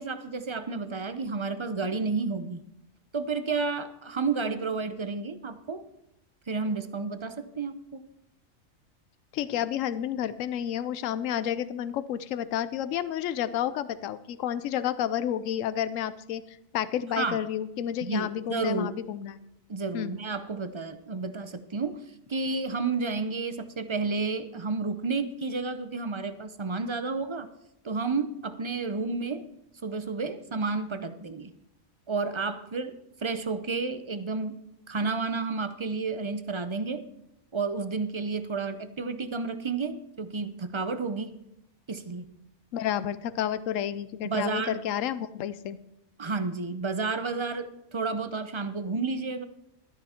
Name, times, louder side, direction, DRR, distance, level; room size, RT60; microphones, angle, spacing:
voice 1, 0.0-2.6 3.1-5.9 6.5-8.0 17.2-17.4 18.0-19.0 19.7-22.0 22.3-27.5 27.8-29.4 29.8-31.5 32.1-37.0 37.5-41.4 41.9-42.3 44.2-44.8 46.2-49.4, right 4 dB, 35° right, 11 dB, 0.5 m, -31 dB
voice 2, 9.3-19.4 19.9-20.1 42.7-45.8, left 10 dB, 75° left, 15 dB, 1.0 m, -30 dB
12.5 x 10.0 x 4.3 m, 0.84 s
omnidirectional pair, 1.4 m